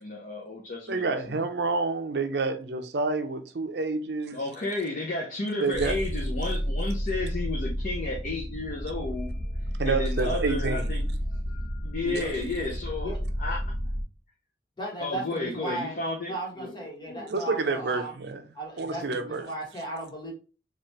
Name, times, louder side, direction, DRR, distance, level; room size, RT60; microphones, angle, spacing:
voice 1, 0.0-1.4 4.3-9.3 9.8-11.0 11.8-13.1 13.4-13.7 15.0-16.7 17.1-17.3, left 2 dB, 50° left, 0.6 m, -32 dB
voice 2, 0.9-4.4 5.6-6.0 9.8-10.9 12.0-12.3 17.3-18.4 18.8-19.4, right 3 dB, 70° right, 0.6 m, -28 dB
sound 1, 5.7-14.0, equal, 70° left, 1.0 m, -31 dB
voice 3, 14.8-18.1 18.5-20.3, right 1 dB, 25° left, 1.3 m, -36 dB
4.3 x 2.5 x 3.2 m
head